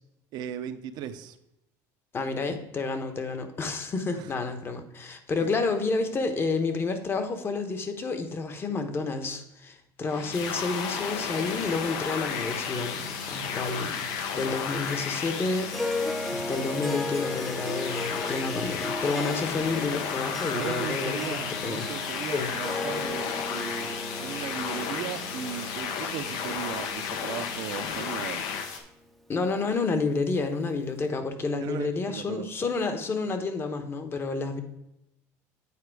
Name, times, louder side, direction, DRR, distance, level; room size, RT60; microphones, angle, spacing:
voice 1, 0.3-1.4 4.1-4.3 5.4-5.5 20.5-28.4 31.6-32.5, right 9 dB, 65° right, 11 dB, 0.7 m, -37 dB
voice 2, 2.1-14.0 14.3-21.9 22.3-22.5 29.3-34.6, left 3 dB, 30° left, 7 dB, 1.0 m, -30 dB
sound 1, 10.0-28.7, left 7 dB, 75° left, 0.8 m, -34 dB
sound 2, 10.3-28.8, left 5 dB, 90° left, 1.2 m, -41 dB
Harp, 15.7-28.2, left 2 dB, ahead, 0.6 m, -36 dB
8.6 x 4.2 x 4.8 m, 0.85 s
supercardioid pair, 110°, 8 cm